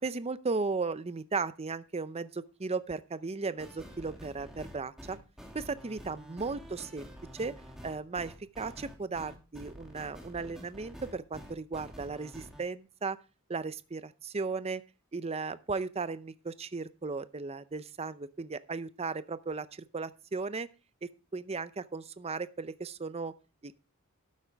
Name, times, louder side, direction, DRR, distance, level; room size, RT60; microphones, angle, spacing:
voice 1, 0.0-5.2 5.5-7.5 7.8-13.2 13.5-14.8 15.1-20.7 21.0-23.3 23.6-23.7, right 4 dB, 30° right, 14 dB, 0.6 m, -36 dB
sound 1, 3.6-12.6, equal, ahead, 2.6 m, -48 dB
12.0 x 8.6 x 3.4 m, 0.32 s
head